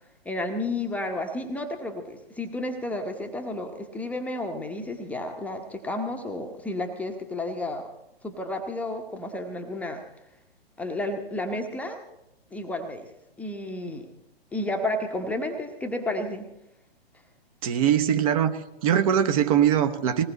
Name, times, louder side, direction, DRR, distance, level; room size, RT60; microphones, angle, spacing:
voice 1, 0.2-7.9 8.2-10.0 10.8-12.0 12.5-13.1 13.4-14.1 14.5-16.5, left 1 dB, 5° left, 3 dB, 0.9 m, -31 dB
voice 2, 17.6-20.2, right 9 dB, 35° right, 7 dB, 1.1 m, -22 dB
20.0 x 17.5 x 4.2 m, 0.87 s
figure-of-eight pair, 120°, 32 cm